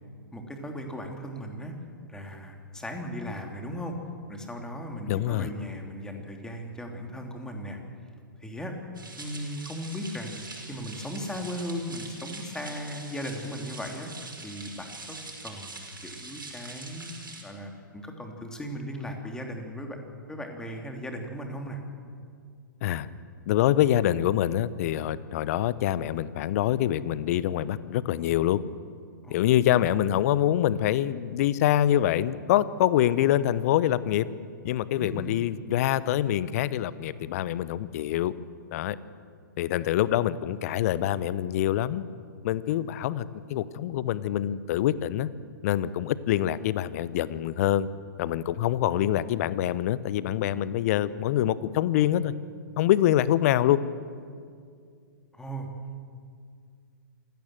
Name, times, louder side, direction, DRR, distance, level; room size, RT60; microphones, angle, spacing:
voice 1, 0.3-1.7 2.1-4.0 4.3-7.8 8.4-8.7 9.2-14.1 14.4-15.2 15.4-17.2 17.4-20.0 20.3-21.8 29.2-29.4 34.9-35.4 55.3-55.7, equal, 5° left, 3 dB, 3.1 m, -37 dB
voice 2, 5.1-5.5 22.8-23.1 23.5-28.6 29.3-34.3 34.6-38.3 38.7-39.0 39.6-42.1 42.4-45.3 45.6-47.9 48.2-52.3 52.8-53.8, left 12 dB, 45° left, 17 dB, 0.9 m, -25 dB
sound 1, 8.9-17.4, right 3 dB, 80° right, 5.7 m, -43 dB
26.5 x 16.5 x 7.7 m, 2.2 s
figure-of-eight pair, 115°, 11 cm